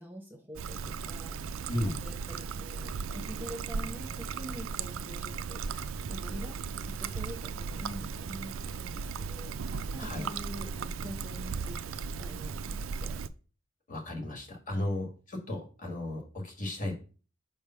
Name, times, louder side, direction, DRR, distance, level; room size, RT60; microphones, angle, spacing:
voice 1, 0.0-1.7 2.0-11.9 12.2-13.1 14.7-14.9, equal, 10° right, 2 dB, 1.0 m, -46 dB
Trickle dribble, 0.6-13.3, right 5 dB, 80° right, 0.4 m, -36 dB
voice 2, 13.9-15.1 15.5-16.9, left 1 dB, 40° left, 1 dB, 1.7 m, -34 dB
5.5 x 3.4 x 5.6 m, 0.36 s
head